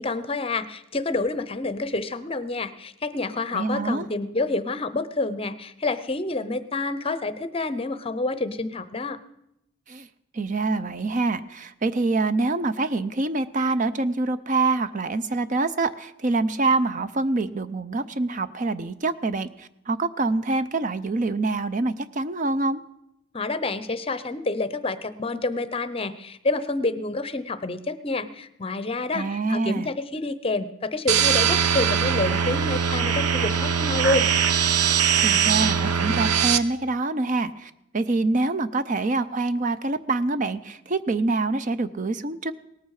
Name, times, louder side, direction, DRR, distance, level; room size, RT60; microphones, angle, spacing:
voice 1, 0.0-9.2 23.3-34.3, left 2 dB, 25° left, 13 dB, 0.7 m, -28 dB
voice 2, 3.5-4.1 9.9-10.1 10.3-22.8 29.1-29.9 35.2-42.5, right 3 dB, 35° right, 12 dB, 0.5 m, -25 dB
sound 1, 31.1-36.6, right 7 dB, 90° right, 0.9 m, -21 dB
18.5 x 14.0 x 4.8 m, 0.83 s
head